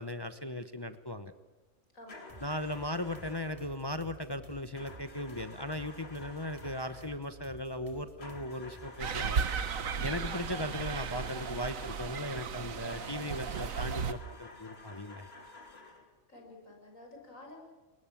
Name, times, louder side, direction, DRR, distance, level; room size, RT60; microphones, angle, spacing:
voice 1, 0.0-1.3 2.4-9.4 10.0-15.3, left 1 dB, 20° left, 11 dB, 0.9 m, -38 dB
voice 2, 1.9-2.5 16.3-17.6, left 2 dB, 80° left, 1 dB, 6.6 m, -51 dB
sound 1, 2.1-3.7 4.7-7.2 8.2-12.2 12.9-16.1, left 2 dB, 50° left, 2.9 m, -51 dB
sound 2, 2.3-9.2, right 1 dB, 25° right, 3.0 m, -53 dB
sound 3, 9.0-14.1, right 6 dB, 85° right, 1.6 m, -35 dB
29.5 x 20.5 x 7.3 m, 1.2 s
omnidirectional pair, 1.4 m